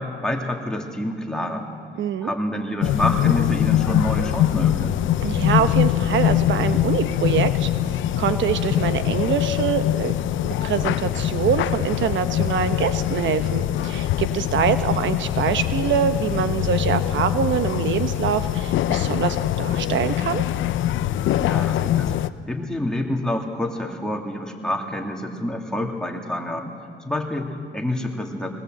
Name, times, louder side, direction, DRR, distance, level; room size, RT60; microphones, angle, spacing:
voice 1, 0.0-1.7 2.2-4.9 21.3-22.1 22.4-26.7 27.0-28.5, left 1 dB, 5° left, 1 dB, 2.9 m, -27 dB
voice 2, 2.0-2.3 5.2-7.7 8.2-10.1 10.4-20.4, right 8 dB, 70° right, 10 dB, 1.1 m, -24 dB
sound 1, 2.8-22.3, left 12 dB, 80° left, 0.6 m, -23 dB
20.0 x 20.0 x 7.9 m, 2.5 s
cardioid pair, 90°, 20 cm